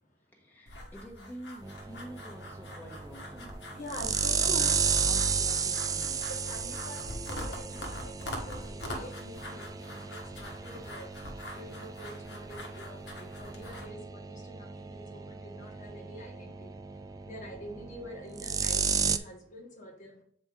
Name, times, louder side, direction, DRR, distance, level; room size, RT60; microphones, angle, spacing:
voice 1, 0.3-3.6 5.0-6.3, equal, 10° left, -2 dB, 1.2 m, -48 dB
sound 1, 0.7-13.9, left 1 dB, 70° left, 1.4 m, -44 dB
sound 2, 1.6-19.2, right 6 dB, 20° right, 0.3 m, -34 dB
voice 2, 3.4-5.1 6.3-20.2, equal, 45° left, 1 dB, 1.2 m, -46 dB
7.7 x 4.4 x 3.7 m, 0.65 s
head